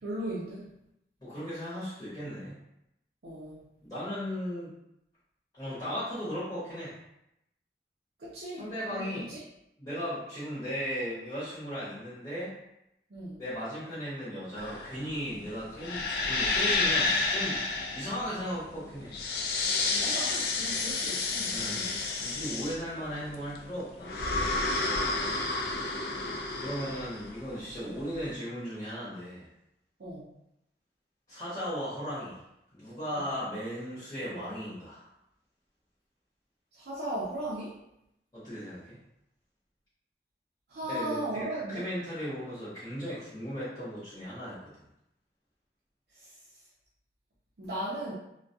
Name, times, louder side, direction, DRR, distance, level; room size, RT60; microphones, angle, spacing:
voice 1, 0.0-0.7 3.2-3.6 8.2-9.4 13.1-13.4 20.0-21.6 24.8-25.3 30.0-30.2 33.1-33.3 36.8-37.8 40.7-41.9 47.6-48.1, right 1 dB, 65° right, -7 dB, 0.5 m, -37 dB
voice 2, 1.2-2.6 3.8-4.7 5.5-6.9 8.6-9.3 9.8-12.5 13.4-19.2 21.5-24.2 26.6-29.5 31.3-32.4 32.7-35.1 38.3-39.0 40.9-44.6, equal, 20° left, -13 dB, 1.0 m, -36 dB
sound 1, 14.6-28.2, left 3 dB, 60° left, 0.3 m, -30 dB
2.2 x 2.2 x 2.6 m, 0.82 s
head